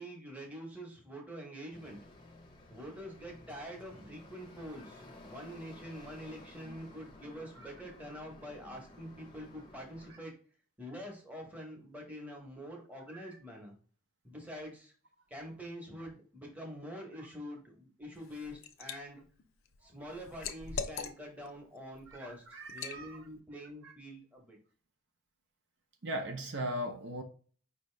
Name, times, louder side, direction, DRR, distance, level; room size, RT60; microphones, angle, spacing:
voice 1, 0.0-2.0 2.7-10.3 10.8-13.7 14.2-14.9 15.3-19.2 19.8-22.4 22.7-24.6, equal, 5° right, 0.9 m, -46 dB
sound 1, 1.7-10.1, left 1 dB, 20° left, 0.7 m, -54 dB
Liquid, 18.2-19.0 19.4-21.5 21.9-22.1 22.7-23.0, left 6 dB, 65° left, 0.5 m, -41 dB
voice 2, 22.1-23.3 23.8-23.9 26.0-27.2, right 1 dB, 55° right, 0.5 m, -40 dB
5.1 x 2.8 x 3.2 m
head